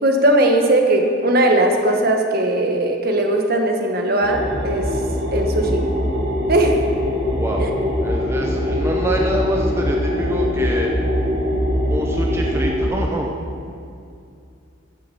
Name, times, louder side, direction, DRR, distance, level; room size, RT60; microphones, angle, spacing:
voice 1, 0.0-5.0 5.3-5.8 6.5-6.9 7.6-7.7, right 1 dB, 50° right, 3 dB, 1.3 m, -18 dB
sound 1, 4.2-12.9, left 1 dB, 35° right, 3.4 m, -22 dB
voice 2, 7.4-7.7 8.0-10.9 11.9-13.3, right 1 dB, 15° right, 0 dB, 0.7 m, -25 dB
14.0 x 6.9 x 6.8 m, 2.4 s
head